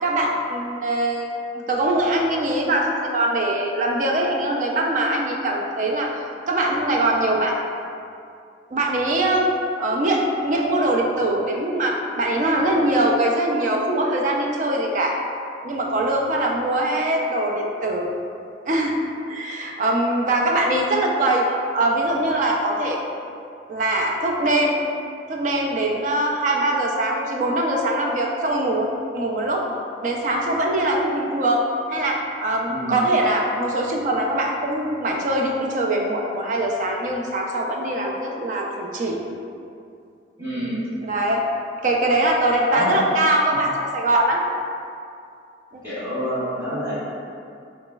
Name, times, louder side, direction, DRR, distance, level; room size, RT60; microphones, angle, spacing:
voice 1, 0.0-1.3 1.7-6.1 6.5-7.6 8.7-9.5 9.8-15.2 15.6-18.1 18.7-18.9 19.3-21.5 21.7-23.0 23.7-24.7 25.3-29.6 30.0-39.2 41.0-41.4 41.8-44.4 45.7-45.8, right 1 dB, 40° right, 0 dB, 0.3 m, -22 dB
voice 2, 40.4-40.8 42.7-43.1 43.5-43.6 45.8-47.0, equal, 15° right, -15 dB, 1.4 m, -28 dB
3.9 x 2.9 x 2.3 m, 2.5 s
head